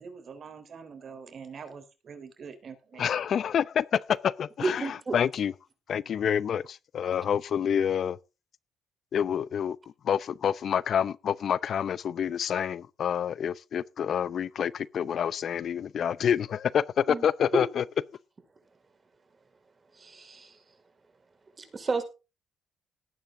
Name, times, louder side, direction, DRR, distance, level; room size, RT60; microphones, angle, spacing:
voice 1, 0.0-3.0, right 6 dB, 55° right, 3.7 m, -44 dB
voice 2, 3.0-5.5 5.9-8.2 9.1-9.8 10.0-17.8, left 8 dB, 60° left, 0.7 m, -27 dB
voice 3, 4.6-5.2 17.1-17.3 17.5-17.6 19.9-20.6 21.6-22.0, right 3 dB, 35° right, 5.1 m, -31 dB
18.5 x 9.2 x 3.8 m
supercardioid pair, 70°, 0 cm